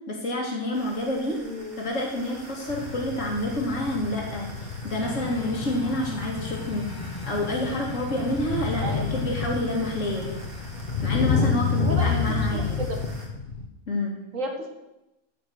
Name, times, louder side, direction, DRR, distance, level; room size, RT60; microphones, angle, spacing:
voice 1, 0.1-1.4 1.8-4.5 4.8-6.9 7.3-10.3 11.0-12.8 13.9-14.2, left 1 dB, 75° left, -1 dB, 2.5 m, -28 dB
sound 1, 0.7-13.3, right 1 dB, 45° right, 2.4 m, -45 dB
voice 2, 1.4-1.8 8.8-9.1 11.8-13.0 14.3-14.7, right 1 dB, 85° right, 3 dB, 2.0 m, -33 dB
sound 2, 2.7-13.7, left 5 dB, 45° left, 1.1 m, -29 dB
sound 3, 5.0-11.2, left 2 dB, 25° left, 0.5 m, -40 dB
15.5 x 5.3 x 6.4 m, 0.94 s
omnidirectional pair, 1.3 m